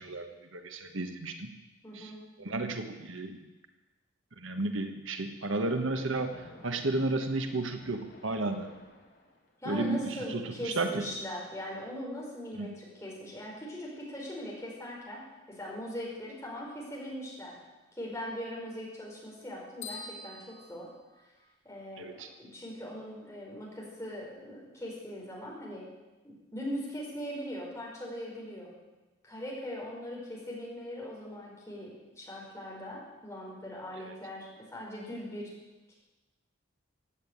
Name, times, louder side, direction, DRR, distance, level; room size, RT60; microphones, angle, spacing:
voice 1, 0.0-1.5 1.9-2.1 2.4-3.4 4.4-8.7 9.7-11.0 12.5-12.7 22.0-22.3 34.0-34.1, right 2 dB, 75° right, 6 dB, 1.4 m, -33 dB
voice 2, 1.8-2.2 9.6-15.2 15.5-17.6 18.0-20.4 20.7-20.9 21.6-25.8 26.2-28.7 29.2-35.5 35.9-36.0, equal, 15° left, -4 dB, 5.0 m, -40 dB
Splash splatter, 5.6-9.7, left 1 dB, 50° left, 3.2 m, -54 dB
sound 1, 19.8-21.7, left 3 dB, 75° left, 5.9 m, -45 dB
15.5 x 9.3 x 9.4 m, 1.1 s
head